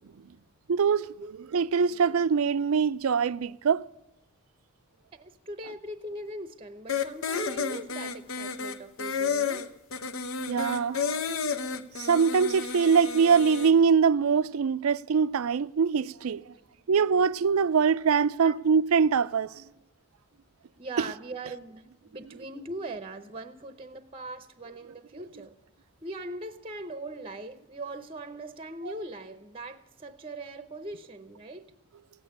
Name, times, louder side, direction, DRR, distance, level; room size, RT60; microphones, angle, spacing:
voice 1, 0.7-1.1 1.5-3.8 10.5-11.0 12.0-16.4 16.9-19.5, right 6 dB, 80° right, 0.4 m, -23 dB
voice 2, 5.1-9.7 10.9-11.2 18.4-18.6 20.8-25.5 26.0-31.7, right 2 dB, 25° right, 0.7 m, -40 dB
sound 1, 6.9-13.7, left 5 dB, 70° left, 0.8 m, -31 dB
16.5 x 8.6 x 9.9 m
head